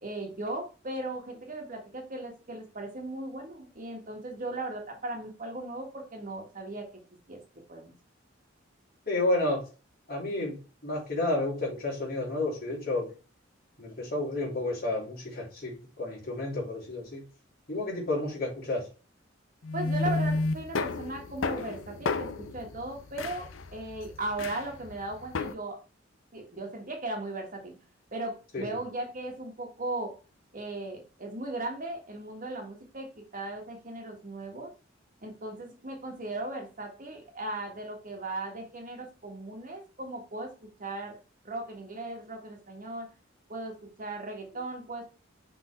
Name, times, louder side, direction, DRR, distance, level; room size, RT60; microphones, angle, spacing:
voice 1, 0.0-6.9 7.3-7.4 7.7-7.9 19.7-25.8 26.3-27.7 28.1-30.1 30.5-34.7 35.2-40.5 40.8-41.2 41.4-43.1 43.5-45.1, right 2 dB, 45° right, 2 dB, 1.6 m, -37 dB
voice 2, 9.1-9.6 10.1-13.1 13.8-17.2 17.7-18.9 28.5-28.8, left 2 dB, 50° left, -2 dB, 3.0 m, -31 dB
sound 1, 19.6-25.5, left 3 dB, 90° left, 0.6 m, -32 dB
5.9 x 3.8 x 4.5 m, 0.34 s
head